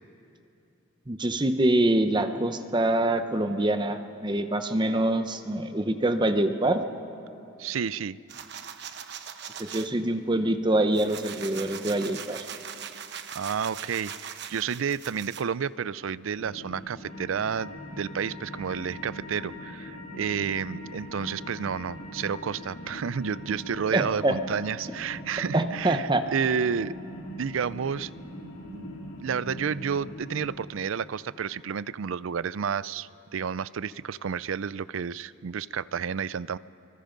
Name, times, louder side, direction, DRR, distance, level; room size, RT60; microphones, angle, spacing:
voice 1, 1.1-6.8 9.6-12.4 23.9-24.4 25.5-26.2, right 1 dB, 25° right, 8 dB, 0.8 m, -25 dB
voice 2, 7.6-8.2 13.3-27.0 27.4-28.1 28.7-28.9 29.2-36.6, right 7 dB, 80° right, 18 dB, 0.4 m, -31 dB
sound 1, 8.3-9.9 10.4-15.4, right 8 dB, 55° right, 1.0 m, -41 dB
sound 2, 16.3-30.5, equal, 75° left, 2.4 m, -42 dB
sound 3, 17.1-33.4 33.7-33.8, left 3 dB, 30° left, 3.7 m, -50 dB
28.5 x 24.0 x 5.2 m, 2.8 s
head